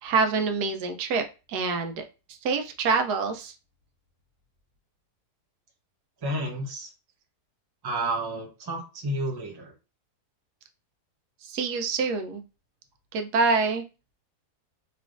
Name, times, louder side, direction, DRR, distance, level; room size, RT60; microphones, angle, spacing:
voice 1, 0.0-2.0 2.3-3.5 11.4-12.4 13.1-13.8, right 4 dB, 85° right, 6 dB, 1.2 m, -26 dB
voice 2, 6.2-6.9 7.8-9.7, right 1 dB, 30° right, 1 dB, 0.4 m, -31 dB
3.2 x 2.9 x 2.4 m, 0.30 s
omnidirectional pair, 1.7 m